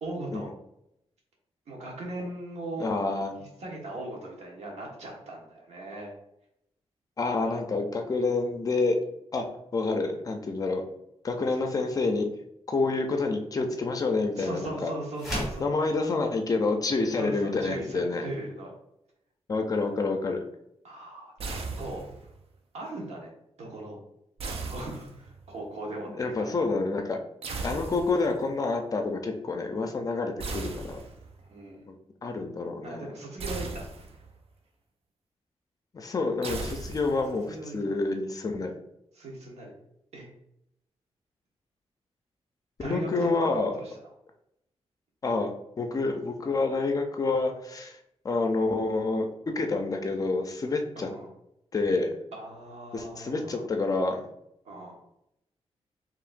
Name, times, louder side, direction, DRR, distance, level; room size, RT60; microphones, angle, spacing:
voice 1, 0.0-0.5 1.7-2.9 3.4-6.1 7.5-7.6 11.5-12.0 14.4-15.7 17.1-18.7 20.8-22.0 22.7-23.3 23.6-24.0 24.6-26.5 31.4-31.9 32.8-33.9 37.0-37.1 37.5-37.8 39.1-39.7 40.1-40.3 42.8-43.5 43.7-44.0 51.0-51.3 52.3-53.7 54.6-55.0, right 2 dB, 80° right, -1 dB, 1.2 m, -39 dB
voice 2, 2.8-3.4 7.2-9.0 9.3-9.4 9.7-10.8 11.2-12.3 12.7-14.9 15.6-18.3 19.5-20.4 26.1-27.2 27.6-31.0 31.9-32.0 32.2-33.0 35.9-38.7 42.8-43.7 45.2-48.0 48.2-51.1 51.7-52.1 52.9-54.2, left 3 dB, 35° left, 4 dB, 0.4 m, -28 dB
sound 1, 15.1-15.7, equal, ahead, 1.4 m, -32 dB
sound 2, 21.4-22.3 24.4-25.5 27.4-28.4 30.4-31.4 33.4-34.4 36.4-37.4, right 3 dB, 60° right, 0.5 m, -37 dB
4.8 x 2.9 x 2.5 m, 0.79 s
wide cardioid pair, 175°, 11 cm